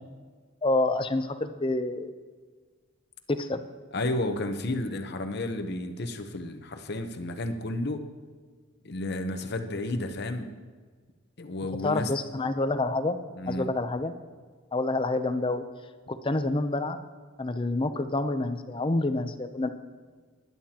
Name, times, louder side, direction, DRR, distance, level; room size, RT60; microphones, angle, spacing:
voice 1, 0.6-2.2 3.3-3.6 11.8-13.2 13.5-14.1 14.7-15.6 16.1-17.0 17.4-19.7, left 2 dB, 25° left, 9 dB, 0.5 m, -28 dB
voice 2, 3.9-8.0 8.8-10.5 11.4-12.1 13.4-13.7, left 1 dB, 50° left, 7 dB, 0.9 m, -32 dB
20.0 x 11.0 x 2.9 m, 1.5 s
head